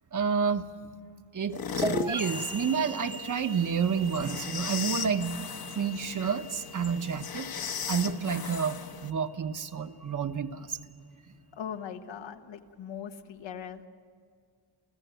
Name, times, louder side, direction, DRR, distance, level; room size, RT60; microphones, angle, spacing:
voice 1, 0.1-0.7 1.3-5.4 5.7-7.5 7.9-10.8, right 6 dB, 45° right, 8 dB, 0.9 m, -30 dB
sound 1, 1.5-9.1, left 7 dB, 55° left, 1.0 m, -37 dB
sound 2, 1.8-9.4, right 2 dB, 10° right, 0.8 m, -39 dB
voice 2, 11.5-13.8, left 8 dB, 85° left, 7 dB, 1.3 m, -40 dB
29.0 x 15.0 x 9.2 m, 2.3 s
wide cardioid pair, 155°, 44 cm